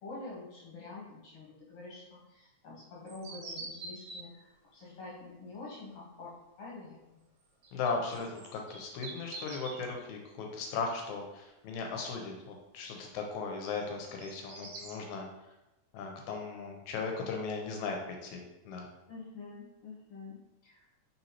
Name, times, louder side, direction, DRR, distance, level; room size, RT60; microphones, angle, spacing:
voice 1, 0.0-7.2 19.1-20.9, left 3 dB, 60° left, -5 dB, 1.8 m, -47 dB
sound 1, 3.1-4.2 7.6-9.9 13.8-14.9, right 3 dB, 65° right, 2.0 m, -45 dB
voice 2, 7.7-15.3 15.9-18.9, left 4 dB, 80° left, 2 dB, 2.0 m, -37 dB
4.2 x 4.0 x 2.9 m, 0.98 s
omnidirectional pair, 3.5 m